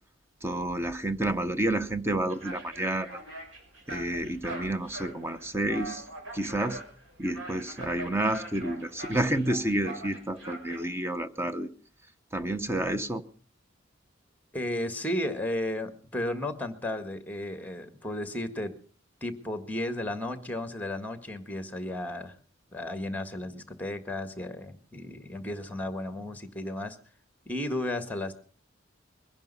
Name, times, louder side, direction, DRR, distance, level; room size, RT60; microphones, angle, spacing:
voice 1, 0.4-3.2 3.9-6.1 6.3-6.8 7.2-11.7 12.3-13.2, right 1 dB, 15° right, 0.8 m, -30 dB
sound 1, 2.3-10.8, right 1 dB, 85° right, 6.1 m, -43 dB
voice 2, 14.5-18.7 19.2-22.3 22.7-27.0 27.4-28.3, left 1 dB, 10° left, 1.7 m, -34 dB
22.5 x 10.5 x 5.4 m
head